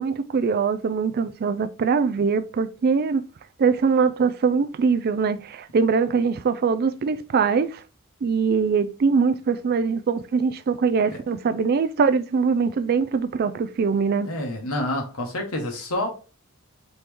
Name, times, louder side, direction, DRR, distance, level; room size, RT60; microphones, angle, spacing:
voice 1, 0.0-3.2 3.6-7.8 8.2-14.3, right 5 dB, 45° right, 0.3 m, -22 dB
voice 2, 14.2-16.1, left 1 dB, 75° left, 1.4 m, -28 dB
4.2 x 3.1 x 3.4 m
head